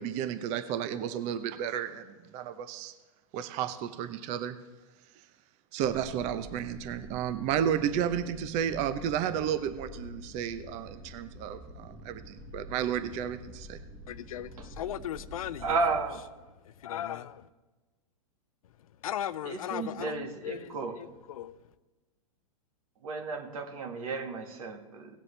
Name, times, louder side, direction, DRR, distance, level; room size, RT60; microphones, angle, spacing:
voice 1, 0.0-2.9 3.3-4.6 5.7-13.8, right 9 dB, 40° right, 11 dB, 0.7 m, -32 dB
sound 1, 5.8-16.0, equal, 15° right, 1.7 m, -47 dB
voice 2, 14.1-15.8 16.6-17.5 19.0-21.6, left 11 dB, 70° left, 16 dB, 0.6 m, -37 dB
voice 3, 15.6-16.2 19.4-21.0 23.0-25.2, right 4 dB, 70° right, 4 dB, 1.9 m, -33 dB
18.0 x 7.5 x 3.3 m, 1.2 s
hypercardioid pair, 120°, 18 cm